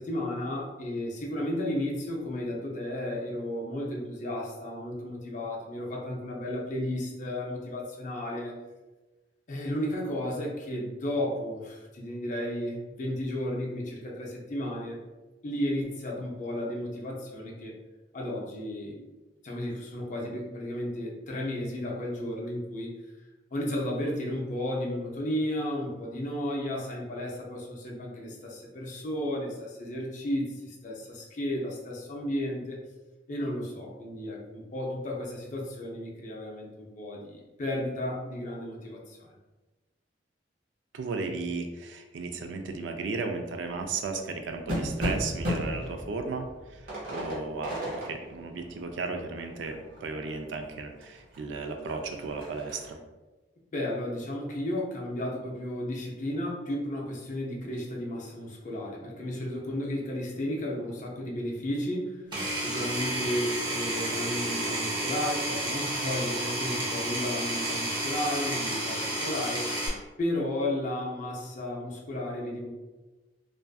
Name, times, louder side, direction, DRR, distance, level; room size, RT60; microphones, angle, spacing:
voice 1, 0.0-8.5 9.5-15.0 15.4-17.8 18.1-19.1 19.4-22.9 23.5-32.8 33.3-39.3 53.7-62.3 62.6-69.7 70.2-72.7, left 1 dB, 45° left, -2 dB, 0.5 m, -33 dB
voice 2, 40.9-46.5 47.1-53.0, right 4 dB, 85° right, 5 dB, 0.3 m, -35 dB
sound 1, 43.7-50.6 51.0-51.1 51.3-52.9, equal, 55° right, 1.2 m, -35 dB
Power tool, 62.3-69.9, right 1 dB, 25° right, 0.7 m, -31 dB
2.4 x 2.4 x 2.2 m, 1.2 s
head